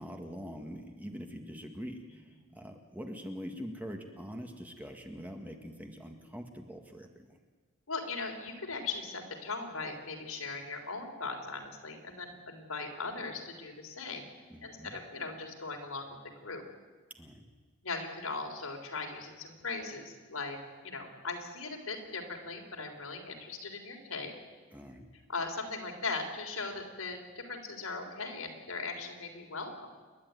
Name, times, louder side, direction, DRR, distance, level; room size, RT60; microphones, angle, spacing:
voice 1, 0.0-7.4 14.5-15.0 17.1-17.5 24.7-25.1, equal, 10° right, 4 dB, 1.8 m, -44 dB
voice 2, 7.9-14.2 14.6-16.6 17.8-20.6 20.8-24.3 25.3-29.9, left 4 dB, 85° left, 2 dB, 3.7 m, -39 dB
28.5 x 11.5 x 9.5 m, 1.4 s
head